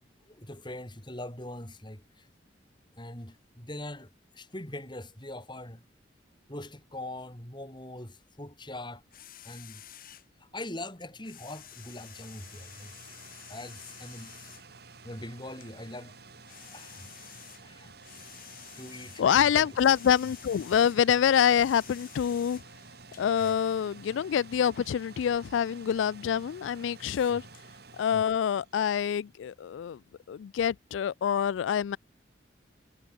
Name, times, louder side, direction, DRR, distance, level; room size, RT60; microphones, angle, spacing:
voice 1, 0.2-2.3 3.0-5.8 6.5-9.0 9.4-9.8 10.4-12.9 13.5-14.4 15.0-16.2 16.5-17.3 17.6-17.9 18.8-19.2 19.5-19.7 23.4-23.5 27.3-27.4, left 1 dB, 25° left, 6.1 m, -42 dB
sound 1, 9.1-10.3 11.0-14.7 15.6-15.7 16.2-19.3 19.6-22.7 23.1-23.6 24.5-24.6 25.2-25.6 26.0-26.1 27.0-27.6, left 11 dB, 50° left, 7.2 m, -50 dB
sound 2, 11.1-29.2, right 4 dB, 60° right, 3.2 m, -52 dB
voice 2, 19.2-22.6 23.2-27.5 28.0-30.0 30.3-32.0, left 8 dB, 85° left, 0.3 m, -26 dB
head